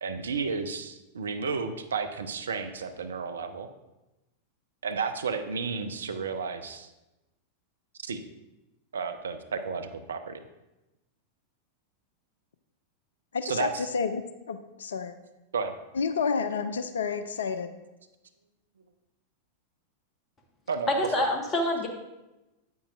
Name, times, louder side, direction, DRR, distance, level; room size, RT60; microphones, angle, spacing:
voice 1, 0.0-3.7 4.8-6.9 8.0-8.2 8.9-10.4 13.4-13.8 15.5-15.8 20.7-21.3, right 5 dB, 70° right, 9 dB, 0.6 m, -32 dB
voice 2, 13.3-15.1 15.9-17.7, left 5 dB, 65° left, 11 dB, 0.5 m, -30 dB
voice 3, 20.9-21.9, left 1 dB, 25° left, 2 dB, 1.5 m, -26 dB
9.4 x 8.6 x 2.5 m, 1.0 s
figure-of-eight pair, 90°, 0 cm